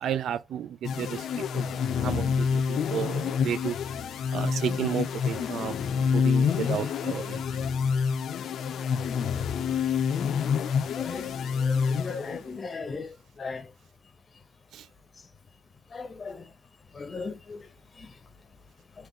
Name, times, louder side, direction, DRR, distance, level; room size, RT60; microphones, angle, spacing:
voice 1, 0.0-0.7 1.0-1.6 2.0-2.3 2.5-3.8 4.3-5.7 6.1-7.4, right 9 dB, 70° right, 0.3 m, -32 dB
sound 1, 0.8-12.6, left 6 dB, 65° left, 0.4 m, -27 dB
voice 2, 11.0-11.3 11.7-13.1 13.4-13.6 15.9-16.4 17.0-17.6, left 4 dB, 35° left, 0.9 m, -36 dB
3.6 x 3.0 x 2.9 m
cardioid pair, 90°, 0 cm